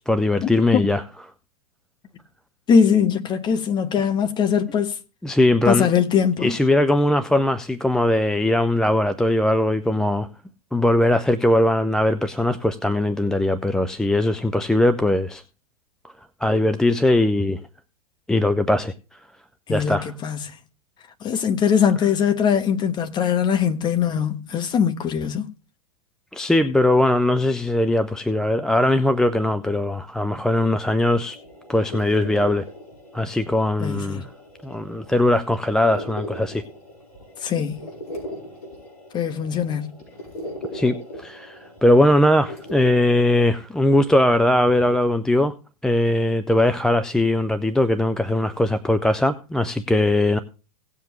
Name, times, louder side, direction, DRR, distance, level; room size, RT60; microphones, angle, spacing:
voice 1, 0.1-1.0 5.2-5.9 6.4-10.3 10.7-15.4 16.4-17.6 18.3-18.9 19.7-20.1 26.3-31.4 31.7-32.6 33.1-34.2 34.6-36.6 40.7-45.5 45.8-50.4, left 1 dB, 5° left, 0.4 m, -20 dB
voice 2, 2.7-5.0 5.6-6.5 19.7-20.5 21.2-25.5 33.8-34.2 37.4-37.8 39.1-39.9, left 7 dB, 20° left, 1.3 m, -21 dB
sound 1, 31.2-43.4, equal, 70° left, 5.7 m, -39 dB
17.5 x 7.4 x 3.1 m
figure-of-eight pair, 110°, 20 cm